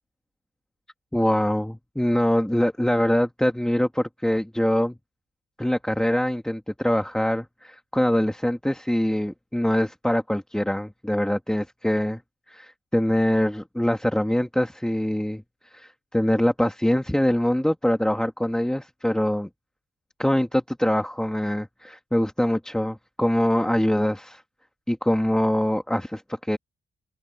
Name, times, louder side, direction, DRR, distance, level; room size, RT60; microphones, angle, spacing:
voice 1, 1.1-5.0 5.6-12.2 12.5-19.5 20.2-24.4 24.9-26.6, equal, 5° left, 1.4 m, -24 dB
open air
wide cardioid pair, 170°, 20 cm